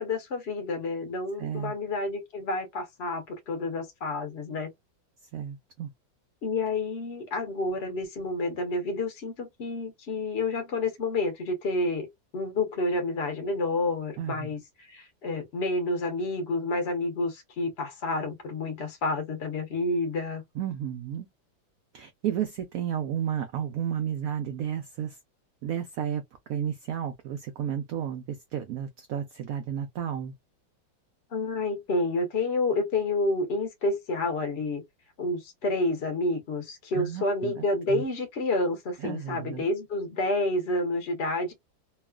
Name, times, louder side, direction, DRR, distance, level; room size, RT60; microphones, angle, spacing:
voice 1, 0.0-4.7 6.4-12.1 12.3-20.4 31.3-34.8 35.2-41.5, left 2 dB, 45° left, 0.8 m, -29 dB
voice 2, 1.4-1.7 5.3-5.9 14.2-14.5 20.5-21.3 21.9-25.2 25.6-26.2 26.5-30.3 36.9-38.0 39.0-39.7, right 9 dB, 85° right, 0.7 m, -32 dB
3.1 x 2.3 x 2.2 m
omnidirectional pair, 2.0 m